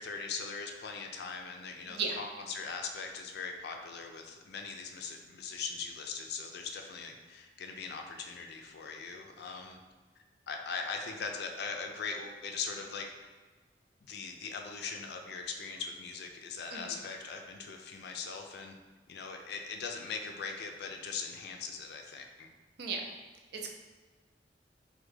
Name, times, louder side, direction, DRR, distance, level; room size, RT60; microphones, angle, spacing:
voice 1, 0.0-9.8 10.5-13.3 14.0-18.8 19.1-22.5, left 5 dB, 65° left, 3 dB, 0.4 m, -40 dB
voice 2, 2.0-2.2 16.7-16.9 22.8-23.0 23.5-23.7, right 5 dB, 65° right, 2 dB, 0.5 m, -34 dB
3.3 x 2.1 x 3.2 m, 1.3 s
head